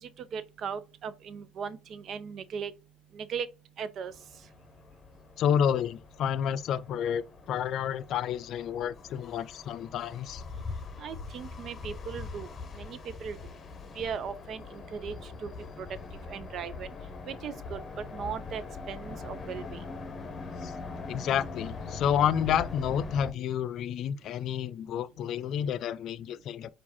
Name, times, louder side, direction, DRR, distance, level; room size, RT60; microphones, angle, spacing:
voice 1, 0.0-2.7 3.1-3.5 3.8-4.1 11.0-12.5 12.7-13.4 14.0-15.5 15.8-15.9 16.3-16.9 17.3-19.8, right 7 dB, 55° right, 0.6 m, -38 dB
sound 1, 4.1-23.3, left 4 dB, 35° left, 0.8 m, -42 dB
voice 2, 5.4-10.4 20.6-20.7 21.1-26.7, left 9 dB, 65° left, 0.4 m, -30 dB
4.6 x 2.4 x 4.2 m
supercardioid pair, 90°, 0 cm